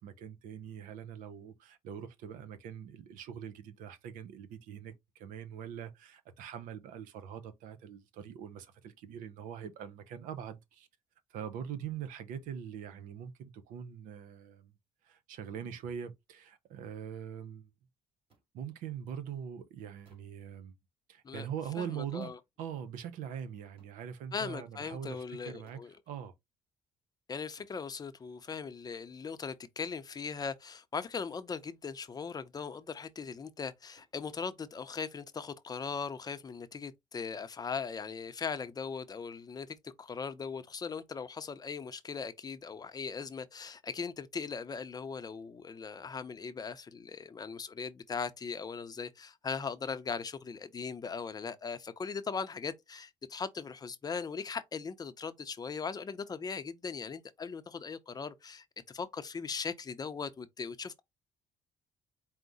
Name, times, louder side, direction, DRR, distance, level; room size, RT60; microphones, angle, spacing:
voice 1, 0.0-10.9 11.3-14.7 15.0-17.7 18.5-20.7 21.1-25.8 26.1-26.3, right 8 dB, 85° right, 0.7 m, -43 dB
sound 1, 18.3-18.5 20.0-20.4 22.2-22.6 23.8-24.0 25.7-26.0 27.6-27.8 29.8-30.1 31.8-32.1 34.0-34.2, right 3 dB, 45° right, 2.4 m, -67 dB
voice 2, 21.2-22.4 24.3-26.0 27.3-61.0, left 5 dB, 30° left, 0.6 m, -39 dB
4.7 x 2.1 x 4.0 m
cardioid pair, 105°, 13 cm